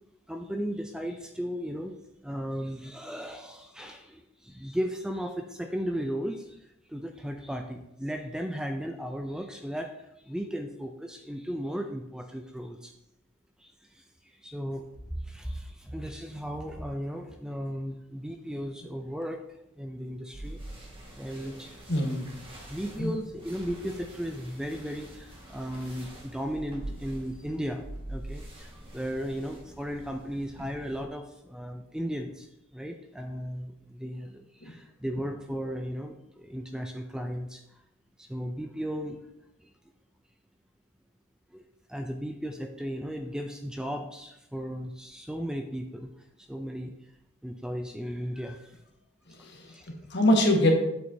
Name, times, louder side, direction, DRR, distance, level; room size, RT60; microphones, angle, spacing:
voice 1, 0.3-12.9 13.6-19.4 19.8-20.6 21.1-22.2 22.7-37.8 38.2-39.2 39.6-39.7 41.5-41.6 41.9-46.1 46.4-47.1 47.4-48.8 49.3-50.0, equal, 5° right, 5 dB, 0.3 m, -36 dB
sound 1, 20.3-31.0, right 1 dB, 25° right, 1.5 m, -45 dB
voice 2, 21.9-22.3 23.0-23.1 34.6-34.7 49.4-50.7, left 1 dB, 50° left, 1 dB, 1.4 m, -24 dB
8.2 x 7.8 x 2.7 m, 0.86 s
head